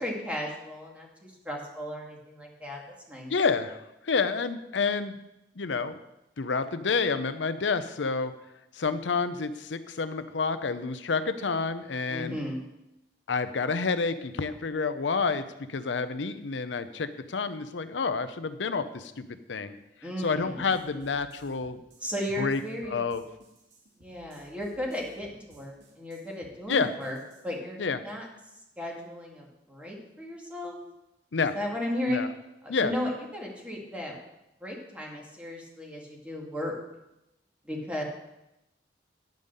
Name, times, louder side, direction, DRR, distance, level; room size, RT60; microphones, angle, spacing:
voice 1, 0.0-2.8 3.1-3.3 12.1-12.6 20.0-20.7 22.0-23.0 24.0-27.2 27.4-28.3 28.8-30.8 31.5-32.2 32.6-34.2 34.6-36.7 37.6-38.0, left 1 dB, 10° right, -2 dB, 2.1 m, -35 dB
voice 2, 3.3-5.2 5.6-6.0 6.4-8.4 8.7-12.4 13.3-19.7 20.2-21.8 22.4-22.6 22.9-23.2 26.7-26.9 27.8-28.0 31.3-31.6 32.1-32.3 32.7-32.9, left 4 dB, 90° left, 11 dB, 0.6 m, -29 dB
sound 1, 20.4-27.5, right 2 dB, 70° right, 2.2 m, -58 dB
10.5 x 5.4 x 6.6 m, 0.91 s
head